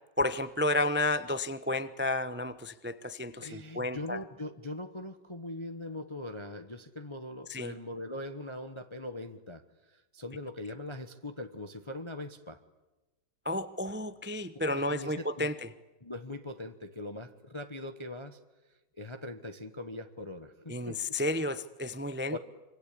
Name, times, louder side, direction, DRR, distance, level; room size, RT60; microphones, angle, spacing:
voice 1, 0.2-4.2 7.5-7.7 13.4-15.7 20.7-22.4, left 2 dB, 15° right, 13 dB, 0.3 m, -32 dB
voice 2, 3.4-12.6 14.7-15.5 16.0-18.4 18.7-21.0 22.3-22.4, left 1 dB, 20° left, 7 dB, 1.0 m, -41 dB
26.0 x 25.0 x 8.6 m, 1.1 s
omnidirectional pair, 2.0 m